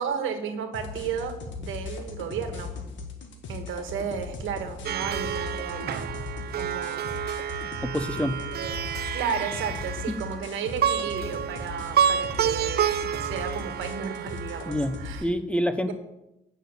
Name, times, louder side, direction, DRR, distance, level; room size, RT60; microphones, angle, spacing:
voice 1, 0.0-2.7 3.5-6.1 6.5-7.1 8.5-8.8 9.1-12.9 13.2-15.3 15.9-16.0, right 7 dB, 85° right, 8 dB, 1.4 m, -33 dB
sound 1, 0.7-15.2, left 4 dB, 70° left, 1.8 m, -38 dB
Plucked string instrument, 4.8-15.2, right 9 dB, 55° right, 0.5 m, -29 dB
voice 2, 7.8-8.4 10.1-10.2 14.7-15.9, equal, 5° left, 10 dB, 0.7 m, -27 dB
9.1 x 6.1 x 6.7 m, 0.90 s
cardioid pair, 90°, 20 cm